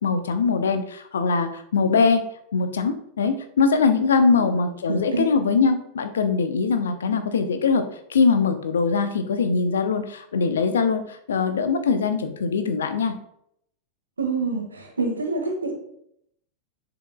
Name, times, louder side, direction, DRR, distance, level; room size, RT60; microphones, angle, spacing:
voice 1, 0.0-2.2 2.5-13.2, left 5 dB, 65° left, 9 dB, 0.7 m, -22 dB
voice 2, 4.2-5.3 14.2-15.7, right 3 dB, 75° right, 1 dB, 1.7 m, -27 dB
11.0 x 4.9 x 2.3 m, 0.73 s
figure-of-eight pair, 90°, 0 cm